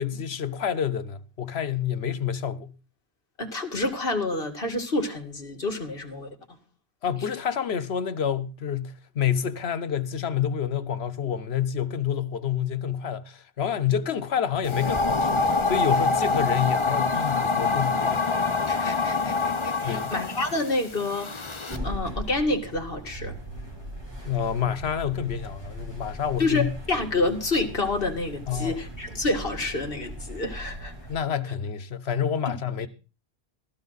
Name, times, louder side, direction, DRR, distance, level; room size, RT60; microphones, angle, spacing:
voice 1, 0.0-2.7 7.0-18.2 19.8-20.1 24.2-26.7 28.5-28.8 31.1-32.9, left 8 dB, 85° left, 1.2 m, -28 dB
voice 2, 3.4-6.3 13.9-14.0 18.7-21.6 21.8-23.4 26.4-30.9, left 2 dB, 65° left, 2.4 m, -28 dB
sound 1, 14.6-21.8, left 3 dB, 30° left, 0.9 m, -25 dB
sound 2, 21.7-31.2, right 1 dB, 25° right, 3.2 m, -39 dB
15.5 x 13.5 x 4.0 m
omnidirectional pair, 1.0 m